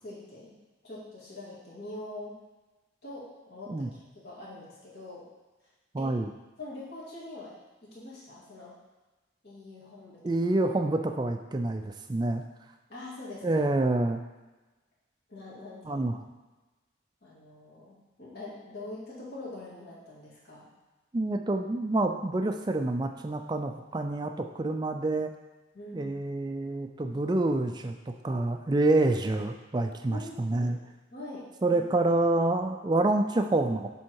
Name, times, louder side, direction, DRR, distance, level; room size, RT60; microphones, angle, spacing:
voice 1, 0.0-0.6 0.8-2.4 3.0-5.2 6.0-6.1 6.6-7.5 7.8-8.8 9.4-10.3 12.9-13.7 15.3-16.1 17.2-20.7 25.7-26.2 30.1-30.8 31.1-31.4 31.7-31.8, left 2 dB, 55° left, -7 dB, 2.0 m, -44 dB
voice 2, 5.9-6.3 10.2-12.4 13.4-14.2 15.9-16.1 21.1-25.3 25.9-30.8 31.6-33.9, right 2 dB, 20° right, 5 dB, 0.3 m, -27 dB
7.4 x 3.5 x 4.6 m, 1.2 s
head